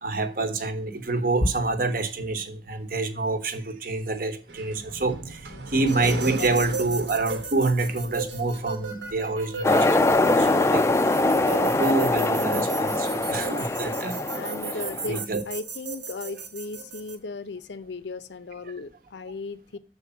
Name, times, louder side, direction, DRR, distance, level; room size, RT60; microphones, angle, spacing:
voice 1, 0.0-14.3 14.7-15.4, right 2 dB, 50° right, 8 dB, 1.0 m, -27 dB
sound 1, 4.5-9.2, right 1 dB, 70° right, 1.2 m, -37 dB
sound 2, 5.9-17.1, right 5 dB, 85° right, 1.6 m, -36 dB
sound 3, 9.6-15.2, left 2 dB, 15° left, 0.3 m, -23 dB
voice 2, 13.3-13.6 14.3-19.8, left 3 dB, 70° left, 15 dB, 0.6 m, -36 dB
6.9 x 4.6 x 6.8 m, 0.40 s
head